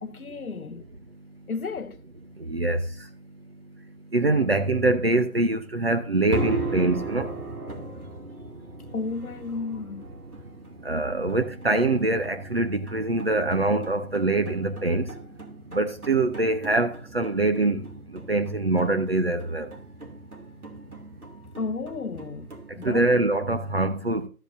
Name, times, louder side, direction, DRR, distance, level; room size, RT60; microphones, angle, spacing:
voice 1, 0.0-0.8 1.5-2.0 8.9-10.0 21.6-22.5 22.8-23.1, left 4 dB, 75° left, 0.8 m, -32 dB
voice 2, 2.5-2.8 4.1-7.3 10.8-15.0 15.7-17.8 18.3-19.7 22.8-24.3, right 2 dB, 40° right, 0.9 m, -24 dB
sound 1, 6.3-23.2, right 3 dB, 80° right, 2.5 m, -38 dB
14.0 x 7.9 x 2.6 m
figure-of-eight pair, 160°, 44 cm